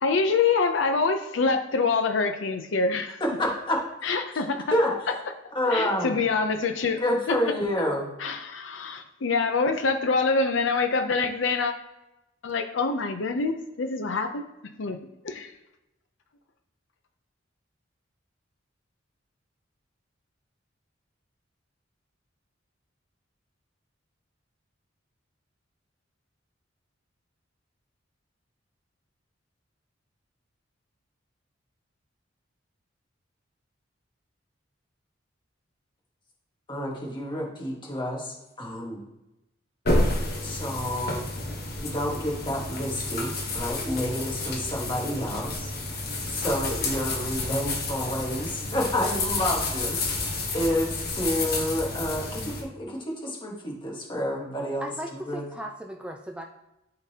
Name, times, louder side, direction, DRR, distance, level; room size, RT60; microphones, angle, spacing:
voice 1, 0.0-3.2 4.0-4.6 5.7-7.0 8.2-11.7 12.4-14.4 14.8-15.0 15.2-15.5, left 4 dB, 70° left, 6 dB, 0.6 m, -25 dB
voice 2, 3.2-3.8 4.7-5.2 5.5-6.1 7.0-8.1 36.7-39.0 40.4-41.3 41.8-45.7 46.2-50.0 50.5-54.9 55.2-55.4, left 1 dB, 25° left, -1 dB, 1.4 m, -29 dB
sound 1, 39.8-52.6, left 2 dB, 55° left, 1.1 m, -30 dB
voice 3, 54.8-56.4, right 1 dB, 5° right, 3 dB, 0.3 m, -37 dB
11.5 x 3.8 x 2.8 m, 0.94 s
head